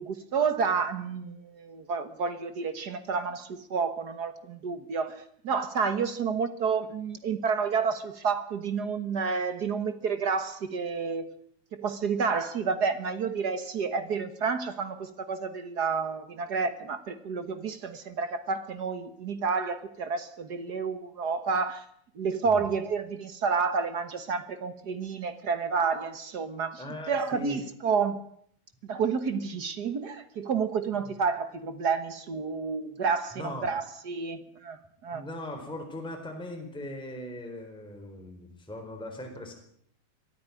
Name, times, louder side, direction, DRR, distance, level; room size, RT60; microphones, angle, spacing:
voice 1, 0.0-11.3 11.7-21.8 22.1-28.2 28.9-35.2, right 5 dB, 60° right, 10 dB, 1.0 m, -30 dB
voice 2, 26.8-27.6 31.0-31.1 33.3-33.7 35.1-39.5, left 1 dB, ahead, 3 dB, 3.9 m, -39 dB
23.5 x 13.0 x 9.7 m, 0.67 s
omnidirectional pair, 3.6 m